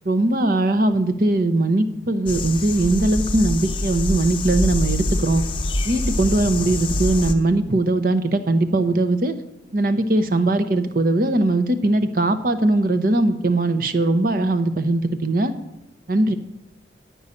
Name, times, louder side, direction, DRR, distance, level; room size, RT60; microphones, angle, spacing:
voice 1, 0.1-5.4 5.8-9.3 9.7-15.5 16.1-16.4, right 2 dB, 50° right, 10 dB, 0.8 m, -20 dB
sound 1, 2.3-7.3, left 2 dB, 25° left, 0.7 m, -25 dB
11.5 x 5.5 x 8.5 m, 0.95 s
head